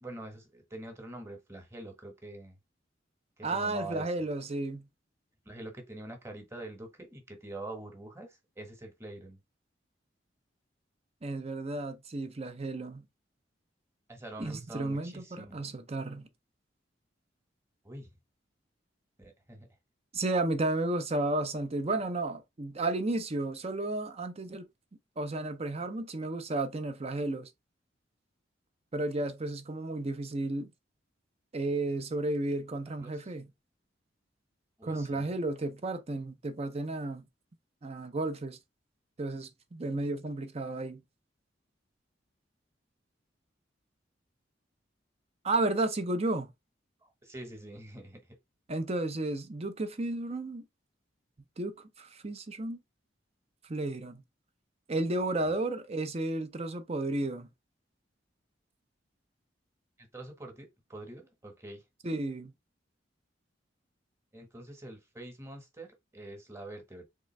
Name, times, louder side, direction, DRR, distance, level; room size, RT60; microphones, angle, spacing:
voice 1, 0.0-2.6 3.4-4.1 5.4-9.4 14.1-15.6 17.8-18.1 19.2-19.7 33.0-33.3 34.8-35.3 47.0-48.2 55.4-55.6 60.0-61.8 64.3-67.1, right 2 dB, 15° right, 1.2 m, -45 dB
voice 2, 3.4-4.9 11.2-13.1 14.4-16.3 20.1-24.7 25.2-27.5 28.9-30.7 31.5-33.5 34.8-37.2 37.8-38.6 39.2-41.0 45.4-46.5 48.7-50.7 51.6-52.8 53.7-54.2 54.9-57.5 62.0-62.5, right 2 dB, 35° right, 0.6 m, -33 dB
3.8 x 3.2 x 3.2 m
head